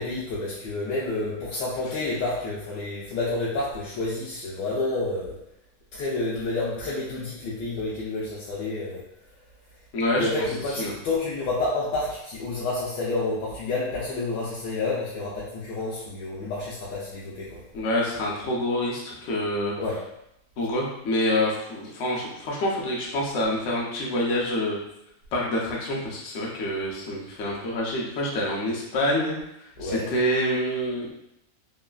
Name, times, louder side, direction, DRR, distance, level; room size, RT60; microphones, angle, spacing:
voice 1, 0.0-5.4 5.9-9.0 10.2-17.6 19.8-20.0 29.8-30.1, left 2 dB, 80° left, -7 dB, 1.2 m, -29 dB
voice 2, 9.9-10.3 10.8-10.9 17.7-19.7 20.6-24.8 25.3-29.4 29.8-31.1, left 1 dB, 65° left, -4 dB, 0.7 m, -26 dB
3.1 x 2.2 x 2.3 m, 0.81 s
omnidirectional pair, 1.8 m